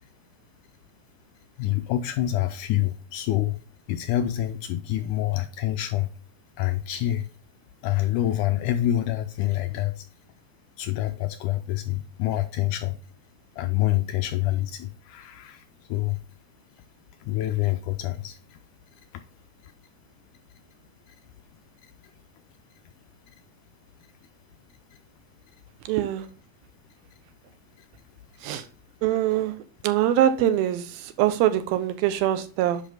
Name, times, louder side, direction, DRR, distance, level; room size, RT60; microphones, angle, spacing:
voice 1, 1.6-3.6 3.9-6.1 6.6-7.3 7.8-10.1 10.8-13.0 13.6-16.2 17.2-18.6 19.1-19.2 19.6-19.7 21.1-21.2 21.8-21.9, left 13 dB, 80° left, 8 dB, 1.9 m, -27 dB
voice 2, 25.9-26.3 28.4-28.6 29.0-29.5 29.8-32.8, right 12 dB, 90° right, 11 dB, 2.8 m, -23 dB
10.5 x 5.5 x 3.9 m, 0.37 s
omnidirectional pair, 4.1 m